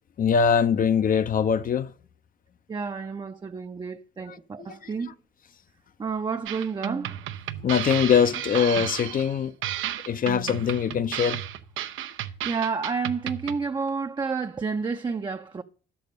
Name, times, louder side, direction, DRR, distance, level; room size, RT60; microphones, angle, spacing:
voice 1, 0.2-1.9 4.3-4.4 4.8-5.1 7.6-9.5 10.1-11.4, left 7 dB, 45° left, 0.6 m, -23 dB
voice 2, 2.7-5.1 6.0-7.1 12.4-15.6, right 5 dB, 20° right, 0.5 m, -30 dB
sound 1, 6.5-13.6, right 12 dB, 90° right, 0.7 m, -33 dB
10.5 x 7.0 x 5.3 m
cardioid pair, 90°, 20 cm